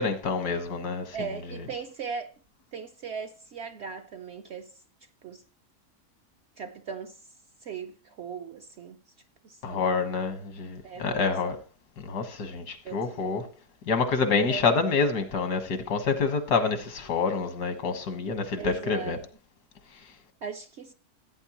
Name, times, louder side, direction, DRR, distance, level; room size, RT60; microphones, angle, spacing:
voice 1, 0.0-1.2 9.6-11.6 12.0-13.4 13.9-19.2, left 4 dB, 85° left, 1.9 m, -27 dB
voice 2, 1.1-2.3 2.7-4.8 5.2-5.4 6.6-7.2 7.6-9.0 9.4-10.0 10.8-11.6 12.8-13.4 14.5-14.7 18.6-19.2 20.4-20.9, right 6 dB, 65° right, 0.7 m, -38 dB
16.0 x 8.9 x 2.9 m
omnidirectional pair, 1.7 m